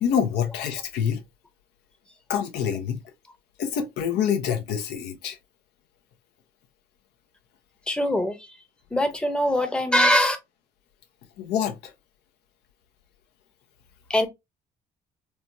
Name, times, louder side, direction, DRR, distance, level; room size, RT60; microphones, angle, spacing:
voice 1, 0.0-1.2 2.3-3.0 3.6-5.4 11.4-11.9, left 8 dB, 75° left, 0.8 m, -26 dB
voice 2, 7.9-8.5 8.9-10.4 14.1-14.3, equal, 5° left, 0.8 m, -22 dB
4.4 x 2.2 x 2.6 m
cardioid pair, 110°, 17 cm